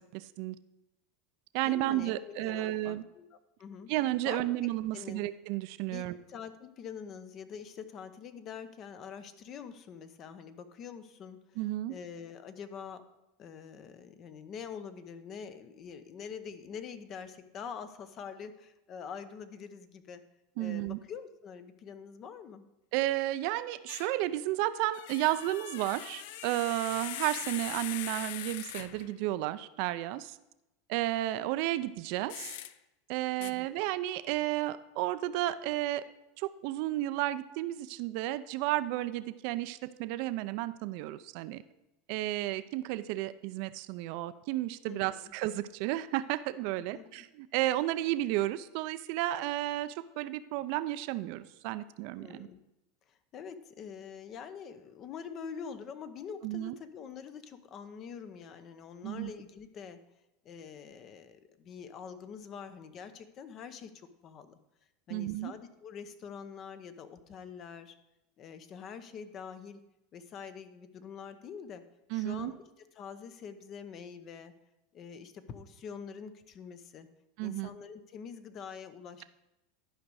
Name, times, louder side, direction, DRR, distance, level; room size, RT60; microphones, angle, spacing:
voice 1, 0.1-0.6 1.5-3.0 3.9-6.2 11.6-11.9 20.6-21.0 22.9-30.4 30.9-32.6 33.1-36.0 36.4-41.6 42.1-52.5 56.4-56.8 59.0-59.3 65.1-65.5 72.1-72.5 77.4-77.7, right 15 dB, 65° right, 13 dB, 0.4 m, -32 dB
voice 2, 1.6-3.9 4.2-4.4 4.9-5.2 5.9-11.6 11.9-13.0 13.4-20.2 20.6-22.7 33.4-33.7 44.9-45.3 46.9-47.2 52.1-52.6 53.1-60.0 60.4-64.6 65.1-67.9 68.4-69.8 70.1-71.8 72.1-74.5 74.9-77.1 77.4-79.2, left 6 dB, 40° left, 11 dB, 0.7 m, -45 dB
sound 1, 23.9-24.2 24.9-29.1 32.3-32.7 33.4-33.5, left 12 dB, 70° left, 0.4 m, -41 dB
11.0 x 5.2 x 4.7 m, 0.93 s
supercardioid pair, 110°, 0 cm